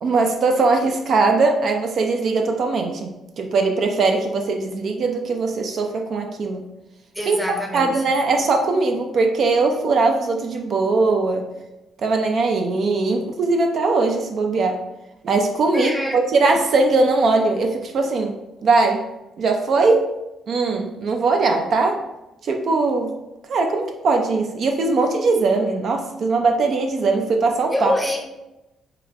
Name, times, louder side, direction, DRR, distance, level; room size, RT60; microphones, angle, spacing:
voice 1, 0.0-6.6 7.3-11.5 12.0-14.8 15.2-18.3 18.6-19.1 19.4-20.1 20.5-22.0 22.4-23.1 23.5-27.9, right 3 dB, 60° right, 3 dB, 0.4 m, -20 dB
voice 2, 7.1-8.0 15.7-16.2 27.7-28.2, equal, 5° right, 1 dB, 0.6 m, -25 dB
4.7 x 2.3 x 2.4 m, 0.96 s
cardioid pair, 90°, 0 cm